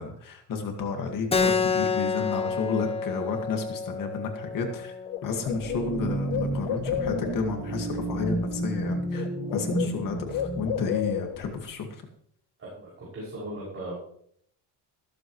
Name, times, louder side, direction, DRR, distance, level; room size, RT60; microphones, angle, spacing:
voice 1, 0.0-5.0 5.2-9.3 9.5-12.1, left 4 dB, 50° left, 3 dB, 2.0 m, -31 dB
Keyboard (musical), 1.3-6.4, left 5 dB, 15° left, 0.5 m, -29 dB
Bird, 4.7-4.8 5.1-7.6 8.6-8.9 9.1-11.6, left 10 dB, 75° left, 0.9 m, -32 dB
sound 1, 5.6-10.6, right 2 dB, 5° right, 4.0 m, -31 dB
voice 2, 12.6-13.9, right 1 dB, 30° right, -6 dB, 6.2 m, -38 dB
15.0 x 13.5 x 3.1 m, 0.65 s
cardioid pair, 150°, 43 cm